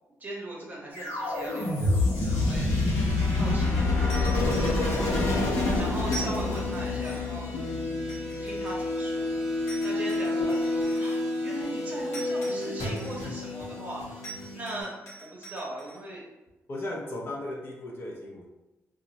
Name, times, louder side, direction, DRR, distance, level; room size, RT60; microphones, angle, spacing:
voice 1, 0.2-2.6 3.4-4.5 5.7-7.5 8.4-9.3 9.8-14.2 14.5-14.9 15.2-16.2, right 1 dB, 30° right, -3 dB, 0.8 m, -39 dB
sound 1, 0.9-14.8, left 2 dB, 80° left, 0.9 m, -28 dB
sound 2, 4.1-5.4 6.1-7.4 8.1-9.2 9.7-11.2 12.1-13.5 14.2-16.0, right 2 dB, 60° left, 1.3 m, -44 dB
voice 2, 16.7-18.5, left 1 dB, 45° left, -1 dB, 0.5 m, -37 dB
2.4 x 2.0 x 3.9 m, 1.0 s
wide cardioid pair, 135°, 5 cm